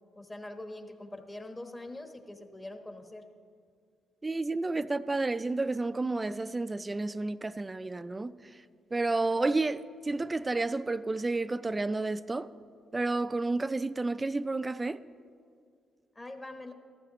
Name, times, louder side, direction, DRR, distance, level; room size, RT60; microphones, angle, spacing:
voice 1, 0.1-3.2 16.1-16.7, left 1 dB, 20° left, 1.2 m, -43 dB
voice 2, 4.2-8.3 8.9-12.5 12.9-15.0, right 3 dB, 25° right, 0.4 m, -31 dB
14.5 x 12.5 x 3.0 m
supercardioid pair, 65°, 0 cm